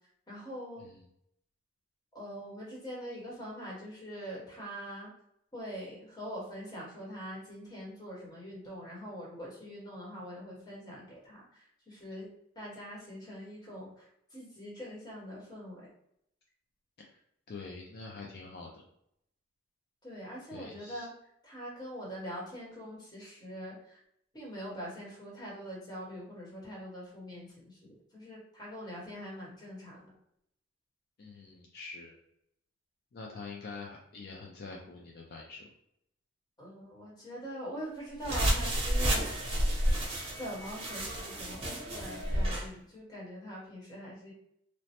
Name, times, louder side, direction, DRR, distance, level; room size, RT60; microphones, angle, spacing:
voice 1, 0.3-0.9 2.1-5.1 5.5-12.3 12.5-15.9 20.0-21.1 21.4-24.0 24.3-30.1 36.6-39.3 40.4-44.3, equal, 20° left, -4 dB, 0.9 m, -43 dB
voice 2, 17.5-18.8 20.5-21.1 31.2-32.1 33.1-35.7, left 4 dB, 50° left, -1 dB, 0.4 m, -45 dB
sound 1, 38.2-42.7, right 1 dB, 30° right, 0.7 m, -30 dB
3.1 x 2.0 x 2.8 m, 0.75 s
head